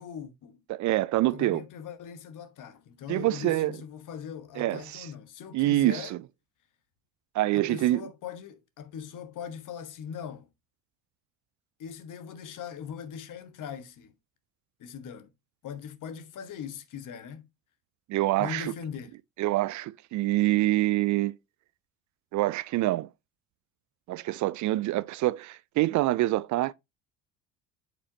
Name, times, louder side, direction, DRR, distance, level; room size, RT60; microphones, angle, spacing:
voice 1, 0.0-0.6 1.3-6.1 7.5-10.5 11.8-14.1 14.8-15.3 15.6-17.5 18.4-19.1, left 7 dB, 50° left, 1.3 m, -40 dB
voice 2, 0.7-1.6 3.1-3.8 4.6-5.1 5.5-6.2 7.3-8.0 18.1-18.7 19.4-21.3 22.3-23.1 24.1-26.7, right 17 dB, 50° right, 0.4 m, -26 dB
8.4 x 5.1 x 2.8 m
hypercardioid pair, 65°, 39 cm